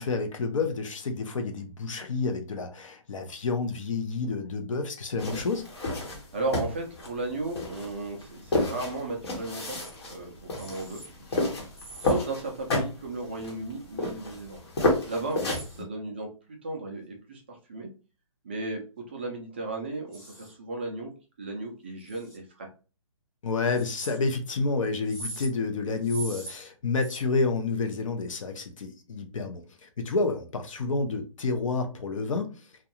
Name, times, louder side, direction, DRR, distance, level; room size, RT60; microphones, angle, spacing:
voice 1, 0.0-5.7 15.4-15.5 23.4-32.5, left 3 dB, 65° left, 0.7 m, -29 dB
sound 1, 5.2-15.8, left 2 dB, 45° left, 1.0 m, -31 dB
voice 2, 6.1-9.8 10.0-11.0 11.3-11.5 12.0-14.6 15.1-16.3 16.6-17.9 18.4-18.8 19.1-21.1 21.4-22.7, right 2 dB, 20° right, 0.3 m, -35 dB
sound 2, 9.8-9.9 10.5-11.1 11.7-12.1 13.1-13.3 15.3-15.8 20.1-20.5 22.0-22.4 23.7-24.2 25.0-25.5 26.0-26.5 27.0-27.2, right 2 dB, ahead, 0.7 m, -42 dB
2.5 x 2.2 x 2.8 m
hypercardioid pair, 165°, 18 cm